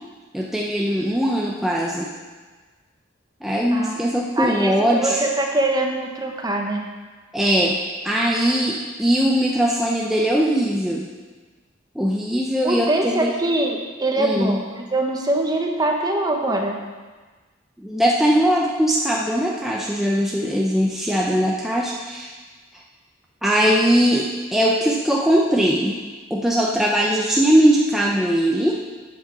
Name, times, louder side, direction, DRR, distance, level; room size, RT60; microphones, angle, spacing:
voice 1, 0.3-2.1 3.4-5.2 7.3-7.8 8.0-11.1 11.9-13.3 14.2-14.6 17.8-22.3 23.4-26.0 26.3-28.7, equal, ahead, -3 dB, 0.7 m, -20 dB
voice 2, 4.4-6.9 12.6-16.8, right 2 dB, 20° right, 1 dB, 1.2 m, -23 dB
8.4 x 8.0 x 6.2 m, 1.4 s
head